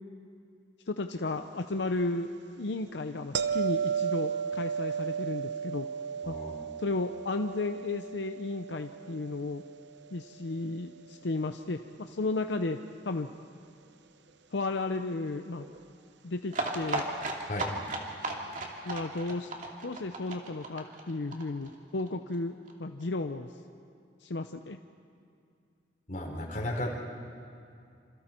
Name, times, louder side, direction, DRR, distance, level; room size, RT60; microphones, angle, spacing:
voice 1, 0.9-2.3 2.6-5.9 6.3-6.4 6.8-9.6 10.1-12.8 13.0-13.3 14.5-15.6 16.2-17.1 18.8-19.5 19.8-22.5 22.8-23.5 24.2-24.8, left 2 dB, 90° left, 7 dB, 0.7 m, -33 dB
sound 1, 3.3-10.3 15.6-15.8, right 7 dB, 80° right, 0.8 m, -34 dB
voice 2, 6.2-6.7 17.5-17.7 26.1-27.0, left 1 dB, 50° left, -1 dB, 4.4 m, -34 dB
sound 2, 16.5-22.1 22.3-22.4 22.7-22.8 23.0-23.1, right 2 dB, 50° right, 2.7 m, -35 dB
27.5 x 27.5 x 4.5 m, 2.5 s
head